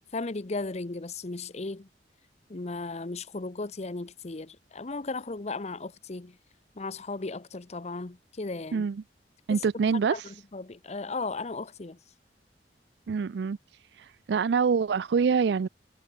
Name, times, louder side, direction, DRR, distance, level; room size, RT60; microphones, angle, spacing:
voice 1, 0.0-1.9 2.5-6.4 6.8-8.9 9.5-9.6 10.1-12.0, left 3 dB, 40° left, 0.8 m, -36 dB
voice 2, 8.7-9.0 9.5-10.3 13.1-13.6 14.0-15.7, right 5 dB, 70° right, 0.4 m, -25 dB
head